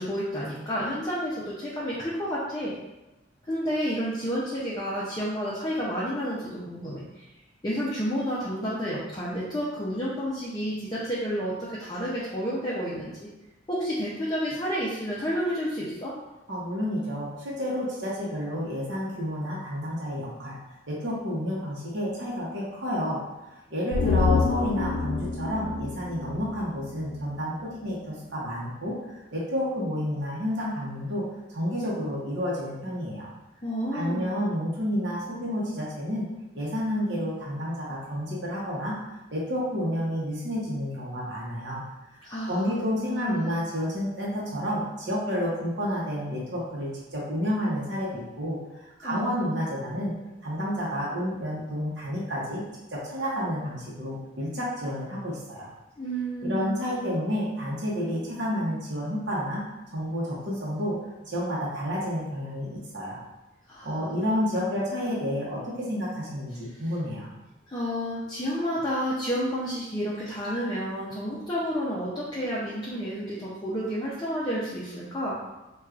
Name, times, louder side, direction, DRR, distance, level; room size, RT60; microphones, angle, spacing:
voice 1, 0.0-2.7 3.5-7.3 7.6-13.3 13.7-16.1 33.6-34.3 42.2-42.7 43.0-43.6 49.0-49.3 56.0-56.8 63.7-63.9 67.7-75.4, equal, 20° left, -8 dB, 0.5 m, -30 dB
voice 2, 16.5-20.5 20.9-23.2 23.7-29.0 29.3-31.2 31.5-33.3 33.9-36.2 36.5-41.8 42.5-50.1 50.4-52.6 52.9-55.7 56.4-59.6 59.9-61.0 61.3-63.2 63.8-67.3, equal, 60° right, -6 dB, 0.8 m, -30 dB
sound 1, 23.9-27.3 27.6-27.7, left 4 dB, 85° left, 0.3 m, -27 dB
4.3 x 2.3 x 2.4 m, 1.0 s
head